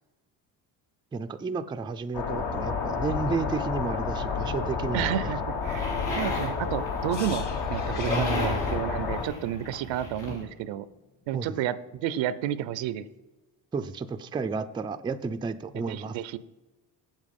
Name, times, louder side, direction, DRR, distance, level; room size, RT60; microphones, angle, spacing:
voice 1, 1.1-5.3 8.1-8.7 11.3-11.5 13.7-16.2, right 4 dB, 10° right, 9 dB, 0.3 m, -32 dB
sound 1, 2.1-9.2, left 5 dB, 70° left, 1.5 m, -30 dB
voice 2, 4.9-10.8 11.3-13.0 15.9-16.4, right 11 dB, 85° right, 16 dB, 0.6 m, -31 dB
sound 2, 5.6-10.4, left 2 dB, 90° left, 3.1 m, -35 dB
sound 3, 7.1-11.0 11.2-11.4, left 5 dB, 40° left, 1.6 m, -44 dB
7.6 x 7.5 x 5.2 m, 1.1 s
cardioid pair, 95°, 44 cm